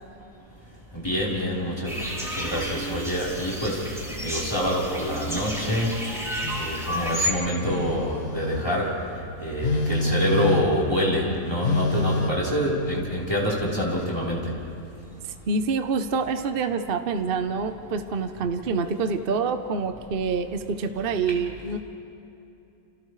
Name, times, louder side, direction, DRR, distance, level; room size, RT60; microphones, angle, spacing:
voice 1, 0.9-3.8 4.1-5.9 6.6-8.9 9.4-14.4, equal, 15° left, -6 dB, 4.1 m, -26 dB
sound 1, 1.8-7.3, equal, ahead, 4.3 m, -31 dB
Telephone, 6.4-6.7 7.6-8.7 9.6-10.8 11.6-12.3, left 3 dB, 65° left, 1.6 m, -26 dB
voice 2, 15.5-21.8, right 4 dB, 45° right, 7 dB, 0.8 m, -26 dB
29.5 x 28.0 x 3.3 m, 2.8 s
omnidirectional pair, 1.8 m